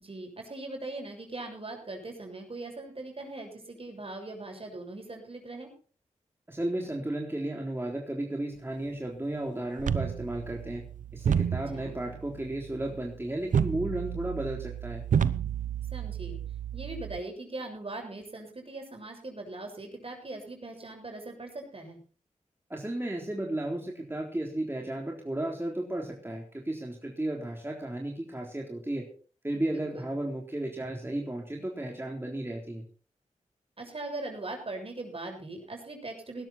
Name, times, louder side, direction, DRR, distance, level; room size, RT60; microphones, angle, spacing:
voice 1, 0.0-5.7 11.5-12.0 15.9-16.4 16.7-22.0 29.5-30.1 33.8-36.5, right 2 dB, 45° right, 3 dB, 7.2 m, -40 dB
voice 2, 6.5-10.8 11.1-15.0 22.7-29.1 29.4-32.8, right 1 dB, 15° right, 0 dB, 3.9 m, -34 dB
sound 1, 9.8-17.2, right 8 dB, 90° right, 0.7 m, -31 dB
18.5 x 12.5 x 4.4 m, 0.40 s
cardioid pair, 50°, 13 cm